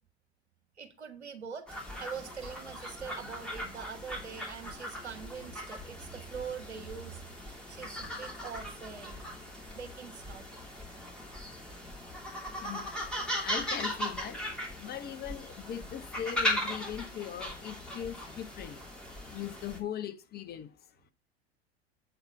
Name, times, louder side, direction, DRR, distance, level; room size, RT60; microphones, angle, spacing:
voice 1, 0.8-1.7 2.0-9.3 9.7-10.5, right 6 dB, 80° right, 1.3 m, -43 dB
sound 1, 1.7-19.8, equal, 5° left, 2.6 m, -38 dB
voice 2, 12.6-14.4 14.8-18.8 19.3-20.7, left 9 dB, 30° left, 0.9 m, -40 dB
8.0 x 4.0 x 7.0 m
figure-of-eight pair, 80°, 33 cm